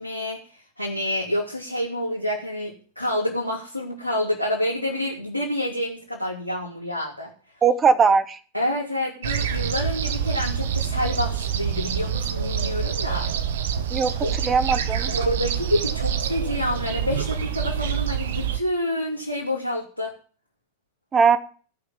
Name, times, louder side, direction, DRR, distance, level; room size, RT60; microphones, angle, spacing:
voice 1, 0.0-7.3 8.5-13.3 14.2-14.3 15.1-20.2, left 1 dB, 90° right, -4 dB, 2.9 m, -28 dB
voice 2, 7.6-8.4 13.9-14.1 14.4-15.1 21.1-21.4, right 5 dB, 20° right, 15 dB, 1.2 m, -19 dB
sound 1, 9.2-18.6, right 8 dB, 60° right, 1.0 m, -26 dB
16.0 x 5.9 x 7.5 m, 0.41 s
figure-of-eight pair, 90°, 0 cm